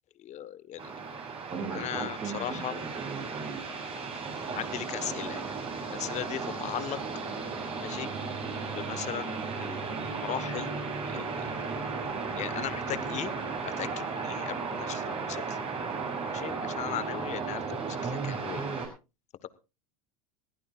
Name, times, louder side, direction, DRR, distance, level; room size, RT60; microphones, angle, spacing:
voice 1, 0.2-0.9 1.7-2.8 4.5-5.6 5.9-7.0 7.8-8.1 8.7-10.8 11.1-11.4 12.3-13.3 13.6-15.6 16.3-17.8 18.0-18.6 19.4-19.5, left 12 dB, 40° left, 16 dB, 1.3 m, -37 dB
sound 1, 0.8-18.9, right 4 dB, 30° right, 6.2 m, -35 dB
21.0 x 15.5 x 2.4 m, 0.29 s
hypercardioid pair, 100°, 19 cm